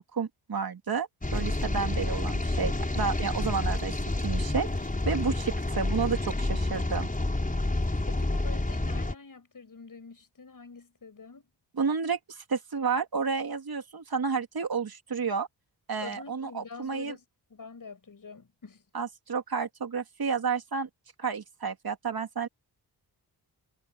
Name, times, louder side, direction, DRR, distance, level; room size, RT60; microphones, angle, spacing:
voice 1, 0.0-3.9 4.2-4.7 5.0-7.1 11.8-15.5 15.9-17.1 18.9-20.9 21.2-22.5, right 5 dB, 60° right, 3.1 m, -31 dB
sound 1, 1.2-9.1, left 2 dB, 20° left, 5.5 m, -29 dB
voice 2, 8.0-11.5 16.0-17.2 17.5-18.8, left 4 dB, 50° left, 7.6 m, -46 dB
wide cardioid pair, 85°, 42 cm